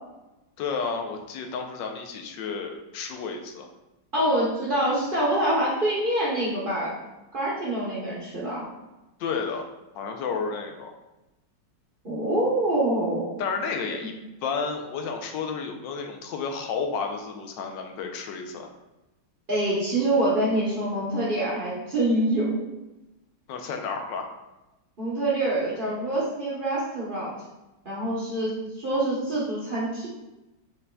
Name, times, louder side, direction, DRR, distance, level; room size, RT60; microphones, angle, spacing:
voice 1, 0.6-3.7 9.2-9.7 9.9-10.9 13.4-14.1 14.4-18.7 23.5-24.3, left 5 dB, 90° left, 3 dB, 1.3 m, -31 dB
voice 2, 4.1-6.9 7.3-8.6 12.0-13.3 19.5-22.5 25.0-27.3 27.8-28.5 28.8-30.1, right 1 dB, 40° right, -7 dB, 0.8 m, -25 dB
5.3 x 3.9 x 2.2 m, 1.0 s
omnidirectional pair, 1.9 m